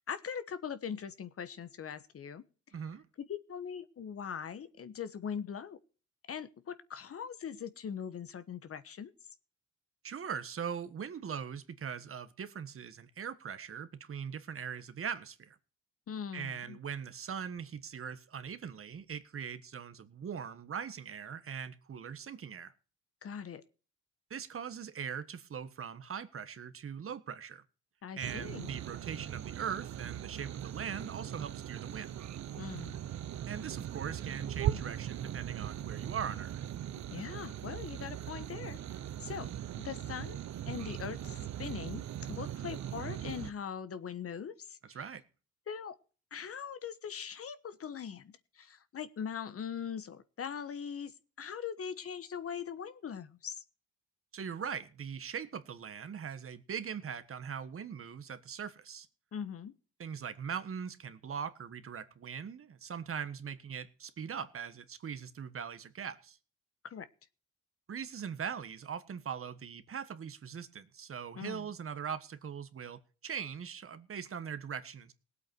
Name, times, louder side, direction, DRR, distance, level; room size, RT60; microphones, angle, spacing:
voice 1, 0.1-2.4 3.3-5.8 6.3-9.1 16.1-16.8 23.2-23.6 28.0-28.8 32.6-33.0 37.1-38.8 39.2-39.5 39.8-40.4 40.7-45.0 45.7-46.0 46.3-53.6 59.3-59.7 66.8-67.1 71.4-71.7, left 7 dB, 50° left, 1.3 m, -41 dB
voice 2, 2.7-3.0 10.0-15.6 16.3-22.7 24.3-27.6 28.2-32.1 33.5-36.5 44.9-45.2 54.3-59.1 60.0-66.4 67.9-75.1, right 7 dB, 45° right, 1.5 m, -41 dB
sound 1, 28.2-43.5, right 11 dB, 65° right, 1.1 m, -39 dB
18.5 x 8.4 x 4.6 m
cardioid pair, 90°, 30 cm